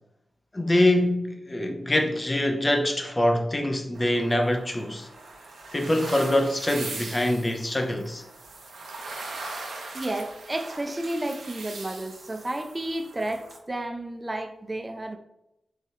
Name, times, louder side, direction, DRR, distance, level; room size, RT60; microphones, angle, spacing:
voice 1, 0.5-5.1 5.7-8.2, left 1 dB, 30° left, 0.5 m, -24 dB
sound 1, 3.9-13.6, right 3 dB, 85° right, 0.5 m, -40 dB
voice 2, 9.9-15.2, right 1 dB, 35° right, 0.4 m, -32 dB
3.1 x 2.3 x 2.7 m
cardioid pair, 40°, 0 cm